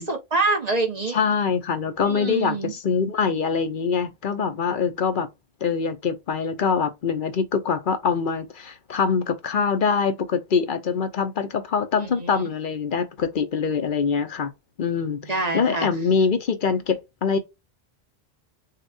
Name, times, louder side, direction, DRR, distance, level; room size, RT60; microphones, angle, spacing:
voice 1, 0.0-1.2 2.0-2.7 12.0-12.5 15.2-15.9, right 3 dB, 40° right, 1.3 m, -26 dB
voice 2, 1.1-5.3 5.6-14.5 14.8-17.4, left 5 dB, 55° left, 0.9 m, -24 dB
6.5 x 2.5 x 2.5 m
omnidirectional pair, 1.1 m